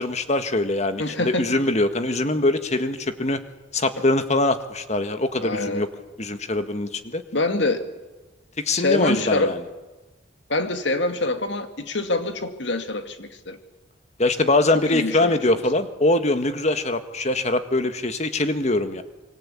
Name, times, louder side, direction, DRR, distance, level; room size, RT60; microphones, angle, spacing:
voice 1, 0.0-3.4 3.7-5.9 6.2-7.2 8.6-9.6 14.2-19.0, left 2 dB, 35° left, 9 dB, 1.7 m, -23 dB
voice 2, 1.0-1.5 5.4-5.8 7.3-7.8 8.7-9.5 10.5-13.6 14.9-15.4, left 2 dB, 65° left, 7 dB, 2.3 m, -25 dB
26.0 x 23.5 x 8.6 m, 1.1 s
head